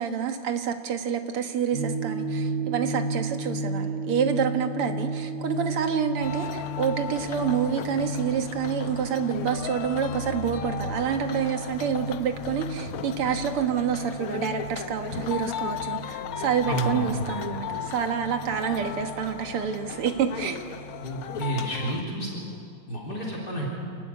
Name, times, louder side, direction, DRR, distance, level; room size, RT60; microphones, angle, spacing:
voice 1, 0.0-20.7, right 7 dB, 85° right, 6 dB, 2.4 m, -28 dB
sound 1, 1.7-21.1, right 2 dB, 20° left, 4.3 m, -35 dB
sound 2, 6.2-22.0, left 9 dB, 85° left, 0.7 m, -36 dB
voice 2, 16.7-17.1 21.0-22.4 22.9-23.7, right 1 dB, 45° left, -3 dB, 4.4 m, -30 dB
28.5 x 14.0 x 9.6 m, 2.3 s
omnidirectional pair, 2.4 m